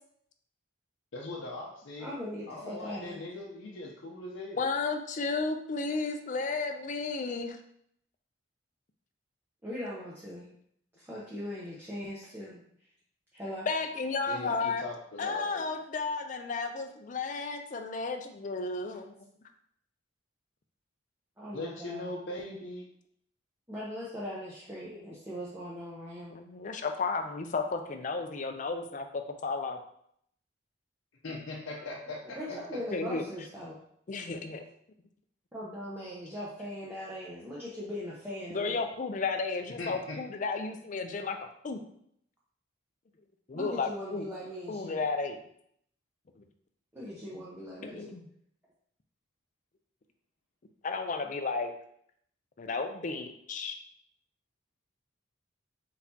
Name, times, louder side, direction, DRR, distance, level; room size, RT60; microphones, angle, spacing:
voice 1, 1.1-2.1 2.5-4.6 14.3-15.6 21.5-22.9 31.2-32.8 39.8-40.2, left 2 dB, 80° left, -3 dB, 0.7 m, -40 dB
voice 2, 2.0-3.2 9.6-10.5 11.0-12.6 13.3-13.7 21.4-22.1 23.7-26.4 32.4-33.8 35.5-38.8 43.5-45.0 46.9-48.1, equal, 10° right, -7 dB, 0.7 m, -40 dB
voice 3, 4.6-7.6 13.7-14.8 15.2-19.1 26.3-29.8 32.9-33.2 34.1-34.6 38.5-41.4 41.6-41.8 43.5-44.3 44.7-45.4 46.4-46.5 47.8-48.3 50.8-51.7 52.6-53.7, left 4 dB, 40° left, 6 dB, 0.4 m, -33 dB
4.1 x 4.1 x 2.8 m, 0.69 s
head